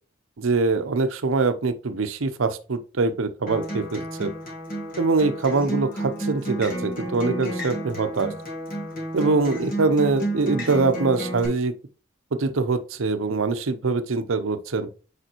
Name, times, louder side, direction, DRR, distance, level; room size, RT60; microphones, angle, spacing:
voice 1, 0.4-4.3 5.0-8.3 9.1-11.7 12.3-14.9, right 3 dB, 80° right, 0.7 m, -23 dB
Acoustic guitar, 3.5-11.5, right 1 dB, 45° left, 2.0 m, -31 dB
6.6 x 5.0 x 3.0 m
head